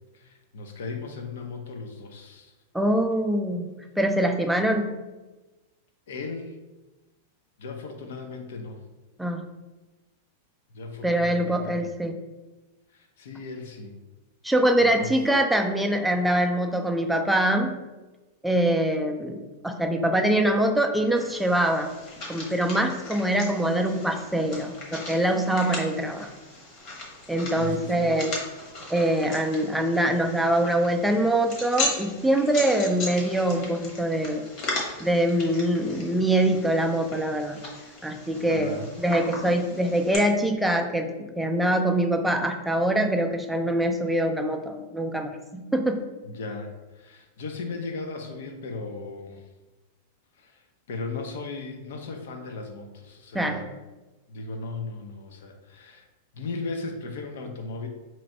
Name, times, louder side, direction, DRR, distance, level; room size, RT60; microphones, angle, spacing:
voice 1, 0.1-2.5 6.1-6.6 7.6-8.8 10.7-11.9 12.9-13.9 14.8-15.1 27.6-28.1 38.5-38.9 46.2-49.4 50.4-50.6 50.9-53.7 54.3-56.1 56.3-57.9, left 3 dB, 75° left, 4 dB, 0.6 m, -36 dB
voice 2, 2.7-3.7 4.0-4.9 9.2-9.4 11.0-12.2 14.4-17.8 18.4-21.9 22.3-26.3 27.3-28.4 28.9-34.5 35.0-37.6 38.0-46.0 53.3-53.6, right 1 dB, ahead, 3 dB, 0.3 m, -24 dB
sound 1, 21.1-40.1, left 2 dB, 45° left, 1.0 m, -37 dB
3.0 x 2.6 x 4.3 m, 1.1 s
supercardioid pair, 150°, 0 cm